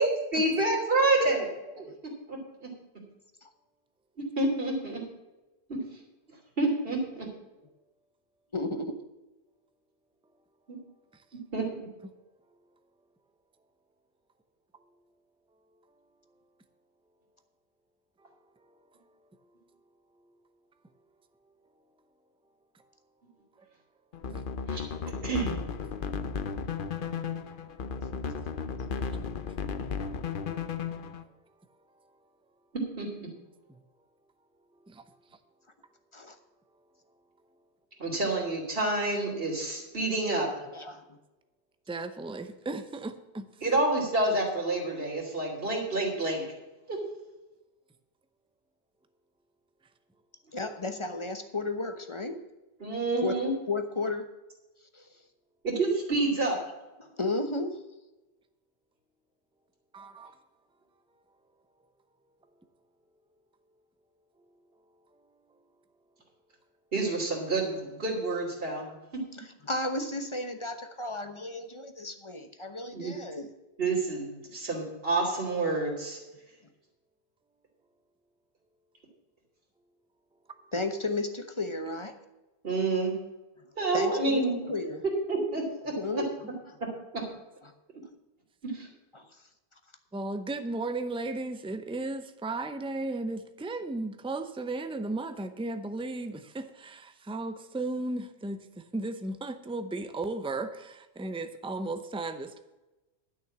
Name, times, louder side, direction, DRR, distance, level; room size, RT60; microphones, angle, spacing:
voice 1, 0.0-1.5 1.7-1.8 2.3-2.7 4.4-5.0 5.7-5.8 6.6-7.3 11.5-11.7 24.7-24.8 25.2-25.6 33.0-33.3 38.0-40.5 43.6-46.4 46.9-47.0 52.8-53.5 55.6-56.6 66.9-68.9 72.9-73.1 73.8-76.2 82.6-83.1 83.8-84.5 85.3-85.9 86.8-86.9 87.1-87.2 88.6-88.9, right 2 dB, 60° right, -2 dB, 3.2 m, -28 dB
voice 2, 8.5-9.0 36.1-36.4 40.6-41.2 50.5-52.4 53.2-54.3 54.9-55.0 57.0-57.8 69.4-73.5 80.7-82.2 83.9-85.0 86.0-86.3 89.1-89.3, left 2 dB, 30° left, 7 dB, 1.1 m, -33 dB
sound 1, 24.1-31.2, left 5 dB, 55° left, 0.9 m, -34 dB
voice 3, 41.9-43.5 59.9-60.3 80.5-80.6 90.1-102.6, right 2 dB, 5° right, 9 dB, 0.6 m, -35 dB
11.5 x 6.5 x 7.1 m, 1.1 s
omnidirectional pair, 1.1 m